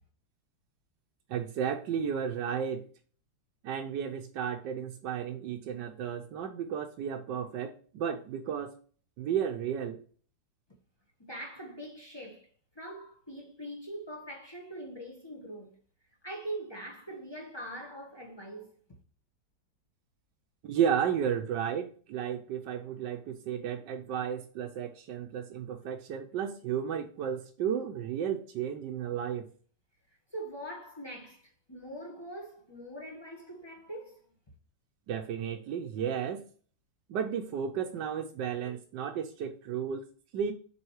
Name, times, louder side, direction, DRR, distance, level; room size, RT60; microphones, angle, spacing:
voice 1, 1.3-2.9 3.6-8.7 9.2-10.0 20.6-29.5 35.1-36.4 37.1-40.0 40.3-40.5, right 8 dB, 70° right, 1.4 m, -33 dB
voice 2, 11.2-12.5 12.7-15.7 16.2-18.8 30.3-31.4 31.7-34.2, right 1 dB, 15° left, 1.2 m, -42 dB
7.1 x 4.2 x 4.7 m
omnidirectional pair, 2.1 m